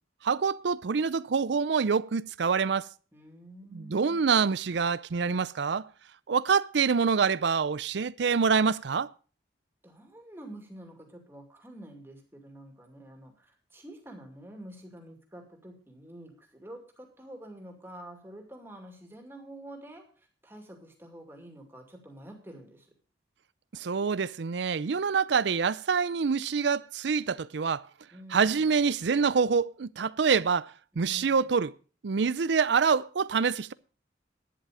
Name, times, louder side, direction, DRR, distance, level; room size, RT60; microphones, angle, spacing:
voice 1, 0.2-2.9 3.7-5.9 6.3-9.1 23.7-27.8 28.3-31.7 32.0-33.7, right 5 dB, 75° right, 0.5 m, -26 dB
voice 2, 3.1-4.4 9.8-22.9 28.1-28.7 31.0-31.5, right 1 dB, 10° right, 2.4 m, -48 dB
11.5 x 10.0 x 4.9 m
head